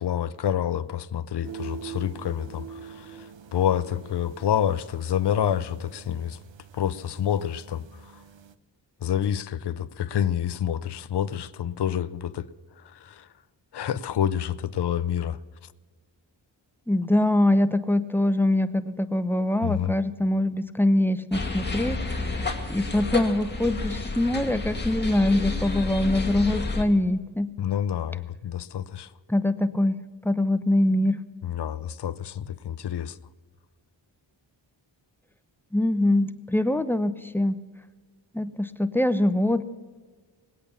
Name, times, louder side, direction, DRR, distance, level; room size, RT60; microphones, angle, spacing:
voice 1, 0.0-6.4 6.7-7.9 9.0-12.5 12.9-13.3 13.7-15.4 19.6-19.9 27.6-29.1 31.4-33.2, left 9 dB, 60° left, 0.6 m, -28 dB
sound 1, 1.4-8.5, right 7 dB, 70° right, 0.8 m, -44 dB
voice 2, 16.9-27.5 29.3-30.0 30.2-31.2 35.7-37.6 38.3-39.6, left 1 dB, 5° left, 0.7 m, -23 dB
sound 2, 21.3-26.8, left 3 dB, 20° left, 2.0 m, -30 dB
20.0 x 8.4 x 7.0 m
wide cardioid pair, 75°, 47 cm